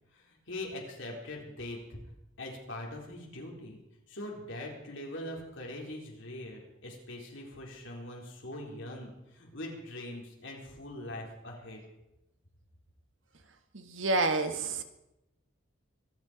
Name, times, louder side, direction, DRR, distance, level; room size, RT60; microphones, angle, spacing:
voice 1, 0.1-2.0 2.4-3.8 4.1-11.8, left 1 dB, 65° left, -1 dB, 4.2 m, -42 dB
voice 2, 13.7-14.8, right 3 dB, 65° right, 7 dB, 1.6 m, -29 dB
25.0 x 9.6 x 5.2 m, 0.90 s
head